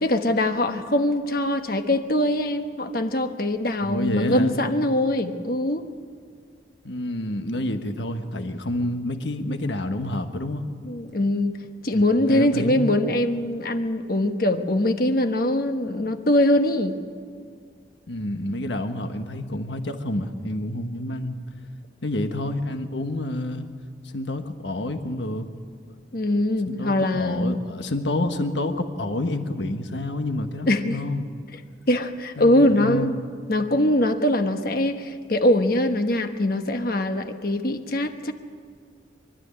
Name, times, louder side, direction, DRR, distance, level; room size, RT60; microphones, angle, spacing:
voice 1, 0.0-5.8 10.8-11.5 11.8-16.9 26.1-27.6 30.7-31.0 31.9-33.2 33.5-38.3, left 1 dB, 55° left, 7 dB, 1.2 m, -22 dB
voice 2, 3.8-4.6 6.8-10.6 11.9-13.0 18.1-21.4 22.0-23.7 24.0-25.5 26.7-31.3 32.4-33.2, left 1 dB, 75° left, 7 dB, 1.4 m, -28 dB
24.0 x 12.5 x 9.7 m, 2.1 s
head